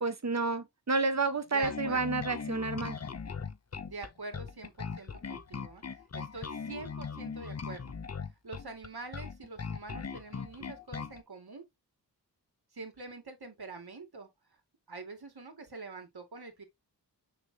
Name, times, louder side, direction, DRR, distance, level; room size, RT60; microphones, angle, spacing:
voice 1, 0.0-3.0, right 3 dB, 40° right, 1.4 m, -30 dB
voice 2, 1.5-2.2 3.9-5.8 6.1-7.9 8.4-11.7 12.7-14.3 14.9-16.6, right 3 dB, 65° right, 2.8 m, -45 dB
Bass guitar, 1.6-11.2, left 5 dB, 40° left, 0.8 m, -39 dB
6.6 x 5.9 x 2.9 m
wide cardioid pair, 55°, 41 cm